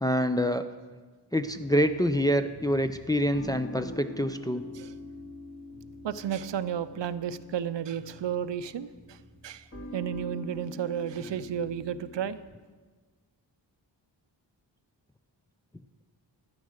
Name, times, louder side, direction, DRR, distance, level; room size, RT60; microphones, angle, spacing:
voice 1, 0.0-0.7 1.3-4.6, equal, 10° left, 8 dB, 0.4 m, -26 dB
sound 1, 1.3-12.3, left 1 dB, 40° left, 2.6 m, -45 dB
voice 2, 6.0-12.4, right 9 dB, 75° right, 14 dB, 0.6 m, -33 dB
13.0 x 9.8 x 6.4 m, 1.4 s
wide cardioid pair, 130°, 44 cm